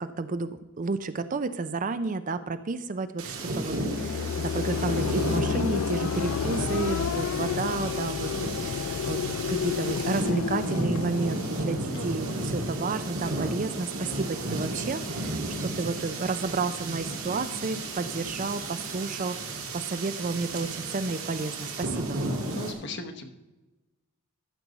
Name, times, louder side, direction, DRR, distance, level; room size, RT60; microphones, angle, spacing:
voice 1, 0.0-22.2, right 3 dB, 35° right, 12 dB, 0.4 m, -31 dB
sound 1, 3.2-22.7, right 2 dB, 85° right, 1.7 m, -33 dB
sound 2, 3.5-12.5, left 7 dB, 90° left, 0.4 m, -31 dB
voice 2, 11.9-12.4 22.5-23.3, left 3 dB, 55° left, 5 dB, 1.0 m, -38 dB
13.5 x 6.9 x 4.0 m, 1.1 s
head